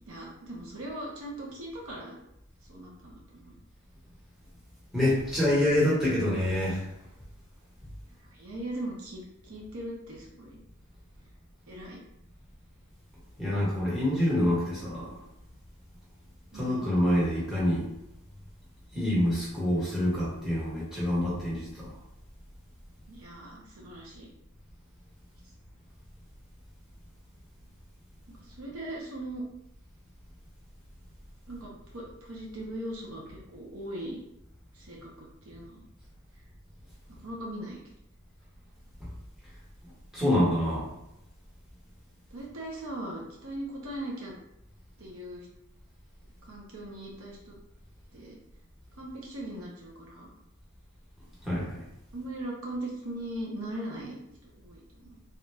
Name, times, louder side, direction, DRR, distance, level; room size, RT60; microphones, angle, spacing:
voice 1, 0.1-2.2 2.7-3.5 8.2-10.6 11.7-12.0 16.5-16.9 23.1-24.3 28.3-29.5 31.5-34.2 34.7-35.9 37.2-37.8 42.3-44.3 45.0-45.5 46.4-47.6 48.1-48.4 48.9-50.3 52.1-55.2, right 1 dB, 70° right, -3 dB, 0.8 m, -39 dB
voice 2, 4.9-6.9 13.4-15.2 16.5-17.9 18.9-21.9 40.1-40.9 51.4-51.8, left 1 dB, 5° right, -8 dB, 1.2 m, -26 dB
3.2 x 2.4 x 3.2 m, 0.84 s
head